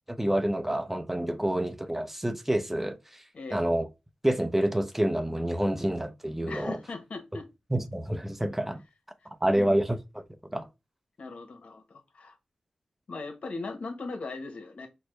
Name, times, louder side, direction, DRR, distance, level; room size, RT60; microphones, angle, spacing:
voice 1, 0.1-3.2 3.5-3.9 4.2-6.8 7.7-8.8 9.4-10.2 10.5-10.7, right 1 dB, 10° right, 0.6 m, -28 dB
voice 2, 6.4-7.5 9.4-9.8 11.2-12.4 13.1-14.9, left 3 dB, 70° left, 0.9 m, -39 dB
4.4 x 2.0 x 3.1 m
cardioid pair, 50°, 2 cm